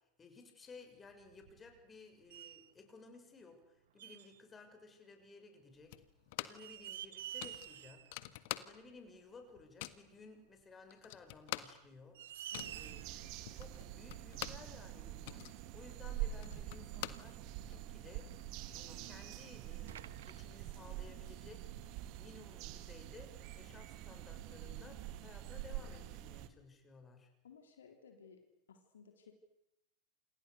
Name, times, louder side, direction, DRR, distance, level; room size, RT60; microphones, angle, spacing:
voice 1, 0.2-5.9 6.4-12.2 12.7-13.1 13.5-17.4 17.7-18.3 18.7-21.6 22.2-27.3, left 4 dB, 20° left, 5 dB, 6.7 m, -57 dB
sound 1, 1.0-2.0 2.3-2.7 4.0-4.4 5.8-5.9 6.4-8.2 8.5-8.6 10.1-10.2 11.2-11.3 11.8-11.9 12.1-13.2 14.5-14.6 15.4-15.5 15.7-15.8 16.5-16.7 18.0-19.0 19.4-19.5 19.9-20.4, right 11 dB, 60° right, 1.2 m, -49 dB
sound 2, 5.9-6.7 7.0-7.1 7.4-9.1 9.4-10.1 10.6-10.7 10.9-14.7 15.1-17.8, left 18 dB, 50° left, 1.6 m, -46 dB
sound 3, 12.6-26.5, right 12 dB, 40° right, 1.9 m, -46 dB
voice 2, 27.4-28.4 28.7-29.3, left 6 dB, 65° left, 4 dB, 3.8 m, -58 dB
29.5 x 28.5 x 6.7 m, 0.85 s
figure-of-eight pair, 90°, 0 cm